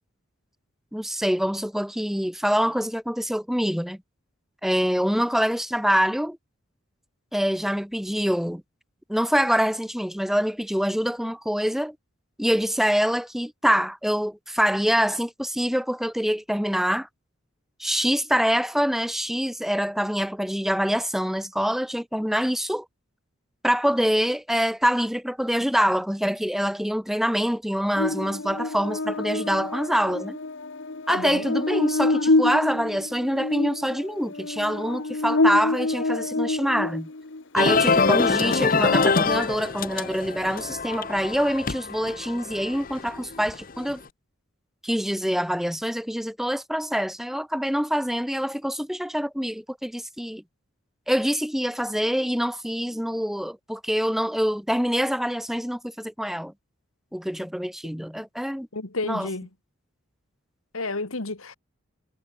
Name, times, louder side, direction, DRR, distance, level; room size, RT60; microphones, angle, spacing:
voice 1, 0.9-4.0 4.6-6.4 7.3-8.6 9.1-11.9 12.4-17.1 17.8-22.8 23.6-30.4 31.1-37.1 37.5-44.0 44.8-50.4 51.1-56.5 57.1-58.7 59.0-59.3, equal, ahead, 1.1 m, -25 dB
Buzz, 28.0-37.4, left 2 dB, 60° left, 1.2 m, -27 dB
voice 2, 31.1-31.5 58.7-59.5 60.7-61.5, left 3 dB, 85° left, 2.3 m, -30 dB
sound 1, 37.6-43.9, left 4 dB, 40° left, 0.8 m, -24 dB
head